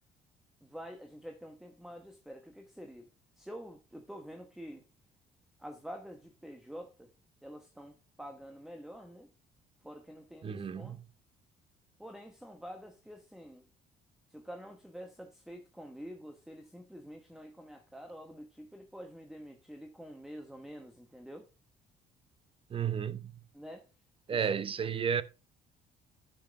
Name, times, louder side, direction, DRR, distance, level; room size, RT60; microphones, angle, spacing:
voice 1, 0.6-3.1 3.4-4.8 5.6-7.1 7.4-9.3 9.8-11.0 12.0-13.7 14.3-21.5 23.5-23.9 24.3-24.4, equal, ahead, 1.2 m, -47 dB
voice 2, 10.4-11.0 22.7-23.4 24.3-25.2, right 7 dB, 30° right, 0.8 m, -32 dB
8.5 x 6.4 x 4.7 m
cardioid pair, 110°, 17 cm